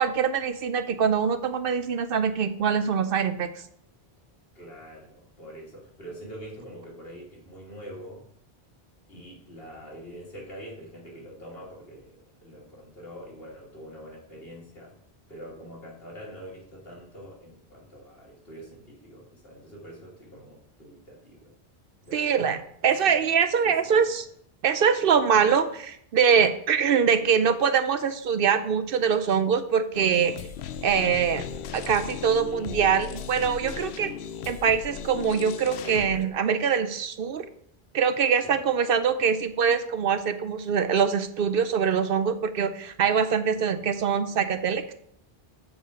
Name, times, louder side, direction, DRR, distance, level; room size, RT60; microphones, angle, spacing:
voice 1, 0.0-3.5 22.1-24.2 24.6-30.3 30.8-31.4 31.7-34.1 34.5-37.5 37.9-44.8, right 7 dB, 65° right, 10 dB, 0.7 m, -23 dB
voice 2, 4.5-8.3 9.1-15.0 15.3-21.5 22.0-22.4 23.0-23.3 23.6-24.2 34.3-34.6 38.4-38.7 43.5-43.8, equal, 65° left, -2 dB, 2.6 m, -45 dB
sound 1, 29.9-36.2, left 8 dB, 80° left, 0.8 m, -37 dB
7.5 x 5.4 x 5.0 m, 0.70 s
omnidirectional pair, 1.1 m